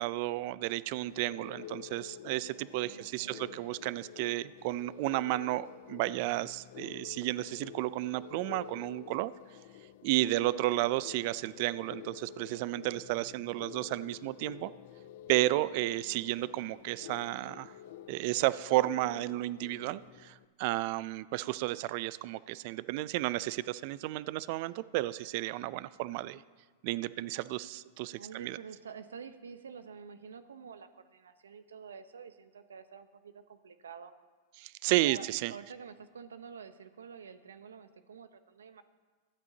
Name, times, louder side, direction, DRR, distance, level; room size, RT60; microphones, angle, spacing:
voice 1, 0.0-9.3 10.0-14.7 15.3-17.7 18.1-26.4 26.8-28.6 34.6-35.5, right 17 dB, 55° right, 18 dB, 0.4 m, -32 dB
sound 1, 1.0-20.4, left 11 dB, 65° left, 0.5 m, -49 dB
voice 2, 2.8-3.7 28.2-34.1 34.9-38.8, right 6 dB, 90° right, 11 dB, 0.7 m, -48 dB
24.0 x 8.3 x 2.8 m, 1.4 s
hypercardioid pair, 105°, 0 cm